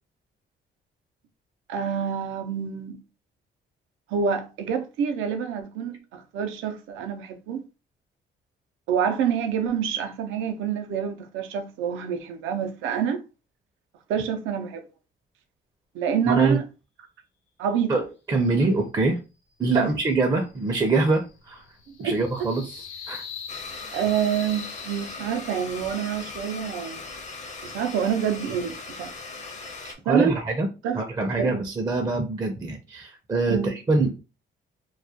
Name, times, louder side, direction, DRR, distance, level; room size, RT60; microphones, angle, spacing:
voice 1, 1.7-3.0 4.1-7.6 8.9-13.2 14.1-14.8 15.9-16.6 17.6-18.0 19.7-19.9 22.0-22.1 23.9-27.0 27.6-29.1 30.1-30.4 30.8-31.0 31.3-31.5 33.5-33.7, right 8 dB, 90° right, 0.5 m, -27 dB
voice 2, 16.3-16.6 17.9-19.2 19.6-21.6 22.0-23.2 30.1-30.7 30.9-34.2, right 3 dB, 20° right, 0.4 m, -24 dB
sci fi, 20.0-25.7, left 6 dB, 85° left, 0.6 m, -43 dB
Domestic sounds home sounds, 23.5-30.0, left 3 dB, 35° left, 0.5 m, -39 dB
2.3 x 2.1 x 2.7 m
cardioid pair, 90°, 20 cm